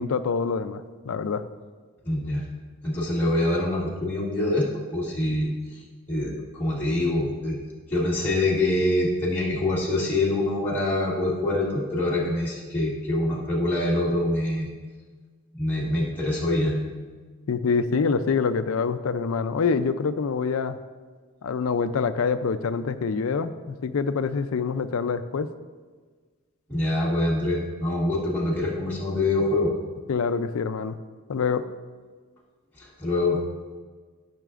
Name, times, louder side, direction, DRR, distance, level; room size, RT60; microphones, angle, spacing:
voice 1, 0.0-1.4 17.5-20.8 21.4-25.5 30.1-31.0 31.3-31.6, left 5 dB, 85° left, 11 dB, 0.4 m, -26 dB
voice 2, 2.0-2.4 2.8-4.7 4.9-5.5 6.1-7.6 7.9-14.7 15.6-17.1 26.7-29.7 32.8-33.4, left 1 dB, 10° left, -7 dB, 1.3 m, -25 dB
12.0 x 5.9 x 2.5 m, 1.5 s
head